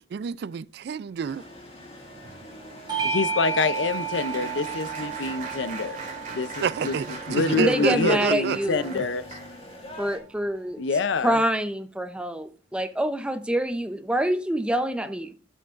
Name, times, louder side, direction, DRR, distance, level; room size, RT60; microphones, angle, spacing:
voice 1, 0.0-1.5 6.6-8.6, right 6 dB, 60° right, 0.3 m, -28 dB
sound 1, 1.2-10.2, left 1 dB, 30° left, 1.9 m, -43 dB
Applause, 1.5-9.8 10.4-10.7 11.0-11.2, right 3 dB, 40° right, 2.5 m, -42 dB
Bell / Doorbell, 2.9-7.7, right 5 dB, 25° right, 1.9 m, -32 dB
voice 2, 3.0-6.0 6.3-9.4 10.8-11.4, left 4 dB, 75° left, 0.5 m, -27 dB
voice 3, 7.6-9.0 10.0-10.8 11.2-15.3, right 1 dB, 5° right, 0.5 m, -26 dB
11.5 x 7.7 x 2.5 m
head